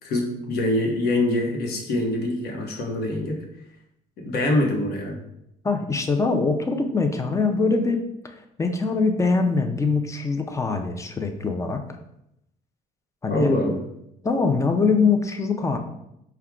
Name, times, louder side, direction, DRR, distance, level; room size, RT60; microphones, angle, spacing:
voice 1, 0.0-3.4 4.2-5.2 13.3-13.8, left 1 dB, 70° left, 1 dB, 1.0 m, -24 dB
voice 2, 5.6-11.8 13.2-13.6 14.2-15.8, left 4 dB, 20° left, 5 dB, 0.5 m, -23 dB
4.6 x 2.3 x 3.6 m, 0.81 s
cardioid pair, 110°, 17 cm